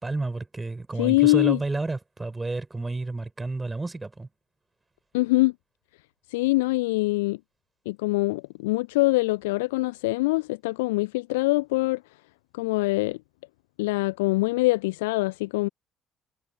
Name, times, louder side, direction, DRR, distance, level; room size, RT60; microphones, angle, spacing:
voice 1, 0.0-4.3, right 3 dB, 20° right, 6.0 m, -31 dB
voice 2, 1.0-1.6 5.1-5.5 6.3-7.4 7.9-12.0 12.5-13.2 13.8-15.7, left 21 dB, 70° left, 0.6 m, -23 dB
figure-of-eight pair, 50°, 0 cm